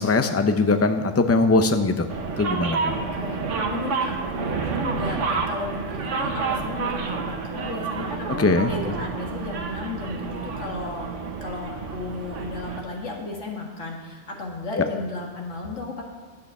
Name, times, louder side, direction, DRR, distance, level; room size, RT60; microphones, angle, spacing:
voice 1, 0.0-2.1 2.4-2.9 8.4-8.7 14.8-14.9, left 3 dB, 20° left, 7 dB, 0.4 m, -21 dB
sound 1, 2.1-12.8, right 5 dB, 75° right, 1.4 m, -29 dB
voice 2, 2.9-5.2 5.5-11.1 11.4-16.0, left 3 dB, 70° left, 0 dB, 2.1 m, -34 dB
11.5 x 8.2 x 6.7 m, 1.3 s
omnidirectional pair, 1.3 m